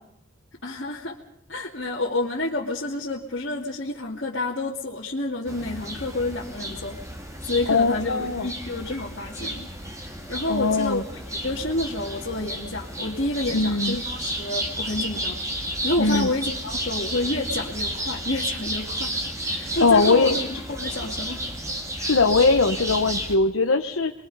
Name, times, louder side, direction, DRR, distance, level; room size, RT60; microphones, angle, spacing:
voice 1, 0.6-1.2 1.5-7.0 7.4-9.7 10.3-15.4 15.8-19.1 19.4-21.4, left 2 dB, 55° left, -5 dB, 2.3 m, -29 dB
sound 1, 5.5-23.4, right 1 dB, 15° right, 2.1 m, -32 dB
voice 2, 7.7-8.5 10.5-11.0 13.5-14.0 16.0-16.3 19.8-20.3 22.0-24.1, left 3 dB, 85° left, 4 dB, 1.1 m, -20 dB
29.0 x 22.0 x 5.4 m, 0.73 s
head